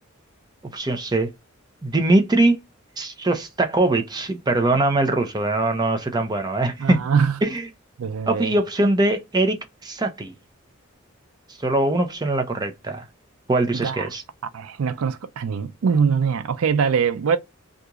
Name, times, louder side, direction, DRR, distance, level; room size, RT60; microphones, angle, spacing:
voice 1, 0.7-1.3 1.8-2.6 3.0-7.0 7.4-7.6 8.3-10.3 11.6-13.0 13.5-14.2, right 2 dB, 20° right, 0.6 m, -22 dB
voice 2, 6.8-7.4 8.0-8.5 13.7-14.1 14.5-17.4, right 6 dB, 80° right, 0.4 m, -22 dB
2.9 x 2.5 x 3.5 m
head